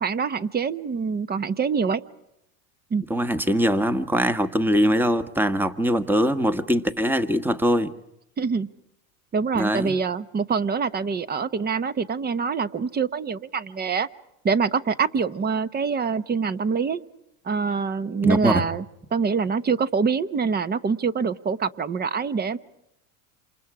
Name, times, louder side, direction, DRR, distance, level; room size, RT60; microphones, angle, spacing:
voice 1, 0.0-2.0 2.9-3.1 8.4-8.7 9.3-14.1 14.4-17.0 17.4-18.8 19.1-22.6, right 5 dB, 25° right, 15 dB, 1.0 m, -25 dB
voice 2, 3.1-7.9 9.5-9.9 18.2-18.6, equal, 5° right, 12 dB, 1.3 m, -22 dB
28.0 x 27.5 x 4.9 m, 0.83 s
supercardioid pair, 110°, 41 cm